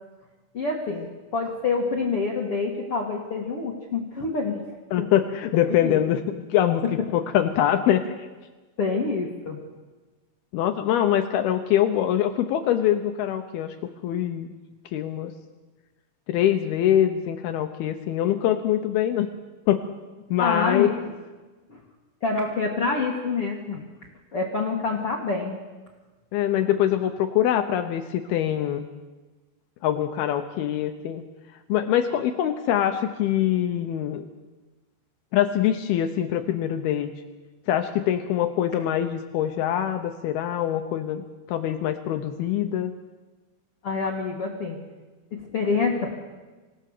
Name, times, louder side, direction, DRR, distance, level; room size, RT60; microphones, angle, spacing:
voice 1, 0.5-4.6 5.0-5.1 5.7-6.0 8.8-9.6 20.4-21.0 21.7-21.8 22.2-23.8 24.3-25.6 43.8-44.8 45.3-46.1, left 4 dB, 55° left, -1 dB, 1.6 m, -27 dB
voice 2, 4.9-6.8 7.1-8.3 10.5-13.8 14.0-14.5 14.9-15.3 16.3-19.3 19.7-19.8 20.3-20.9 26.3-28.8 29.8-31.2 31.7-34.2 35.3-37.1 37.7-42.9, left 11 dB, 90° left, 7 dB, 2.2 m, -24 dB
26.5 x 17.5 x 6.7 m, 1.3 s
omnidirectional pair, 5.6 m